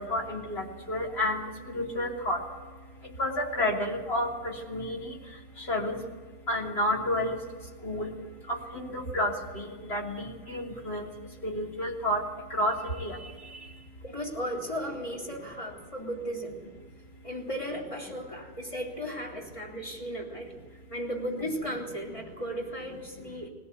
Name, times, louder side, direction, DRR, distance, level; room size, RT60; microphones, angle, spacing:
voice 1, 0.0-1.4 1.7-2.4 3.2-4.3 4.7-5.1 5.7-6.0 6.5-7.4 7.8-8.1 8.7-11.1 11.4-12.2 12.5-12.7 13.0-13.2, left 1 dB, 70° left, -1 dB, 3.4 m, -30 dB
voice 2, 14.0-16.6 17.2-20.5 20.9-23.5, equal, 30° left, 0 dB, 3.5 m, -35 dB
20.0 x 17.5 x 8.3 m, 1.4 s
omnidirectional pair, 1.1 m